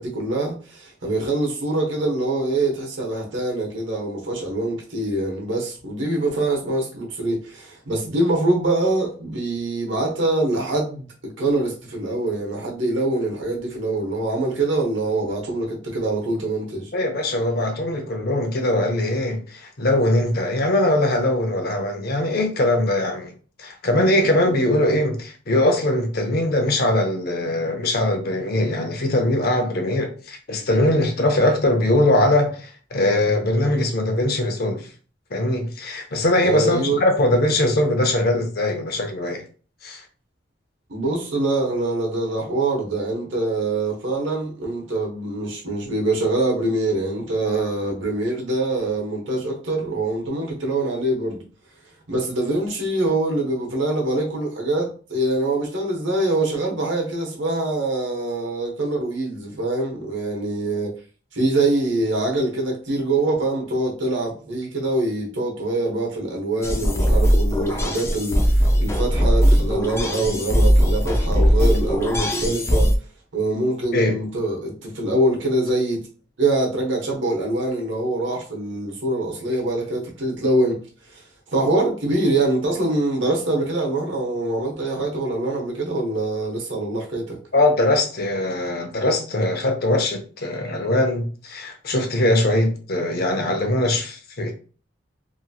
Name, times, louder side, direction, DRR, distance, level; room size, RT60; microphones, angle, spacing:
voice 1, 0.0-16.9 36.4-37.0 40.9-51.4 52.1-60.9 61.3-72.9 73.3-76.1 76.4-80.8 81.1-81.2 81.5-87.4, right 2 dB, 80° right, 1.0 m, -24 dB
voice 2, 16.9-23.3 23.6-34.9 35.3-39.4 39.8-40.0 73.9-74.2 87.5-94.5, left 1 dB, 55° left, 0.7 m, -21 dB
sound 1, 66.6-73.0, equal, 15° left, 0.4 m, -19 dB
2.9 x 2.7 x 2.3 m
head